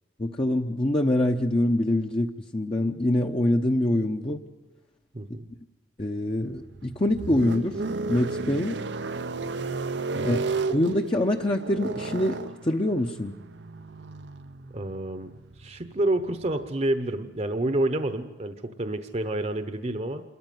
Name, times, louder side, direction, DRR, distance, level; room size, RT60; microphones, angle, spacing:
voice 1, 0.2-4.4 6.0-7.8 8.1-8.8 10.2-10.4 10.7-13.3, left 1 dB, 30° left, 2 dB, 0.9 m, -25 dB
voice 2, 5.1-5.5 10.1-10.4 14.7-15.3 15.6-20.2, right 1 dB, 40° right, 9 dB, 1.0 m, -29 dB
sound 1, 6.4-16.6, right 3 dB, 80° right, 0.8 m, -34 dB
27.5 x 14.0 x 9.4 m, 1.1 s
head